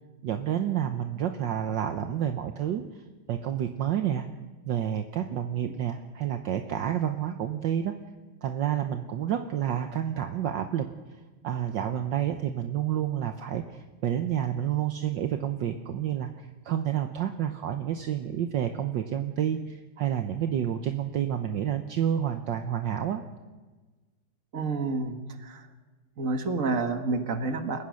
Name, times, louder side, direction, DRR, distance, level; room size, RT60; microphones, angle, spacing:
voice 1, 0.2-2.8 3.3-4.3 4.6-7.9 8.4-10.9 11.4-23.2, right 10 dB, 65° right, 7 dB, 1.5 m, -29 dB
voice 2, 24.5-25.7 26.2-27.8, right 3 dB, 40° right, 8 dB, 1.9 m, -29 dB
29.5 x 16.0 x 6.4 m, 1.3 s
omnidirectional pair, 2.3 m